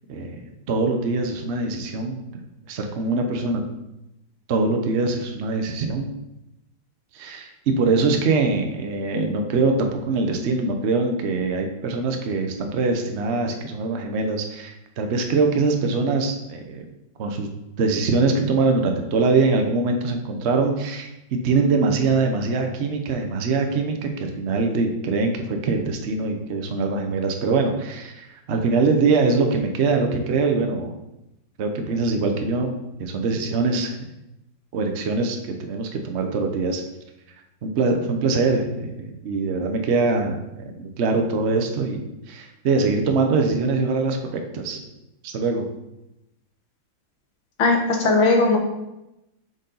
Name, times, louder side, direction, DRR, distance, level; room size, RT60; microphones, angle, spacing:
voice 1, 0.7-2.3 2.7-3.6 4.5-6.1 7.1-16.8 17.2-17.5 17.8-30.9 31.6-32.7 33.0-33.9 34.7-36.8 37.6-42.0 42.3-44.8 45.2-45.6, right 3 dB, 80° right, 4 dB, 0.6 m, -23 dB
voice 2, 47.6-48.6, left 3 dB, 80° left, 1 dB, 1.9 m, -18 dB
6.5 x 5.2 x 3.9 m, 0.91 s
omnidirectional pair, 2.2 m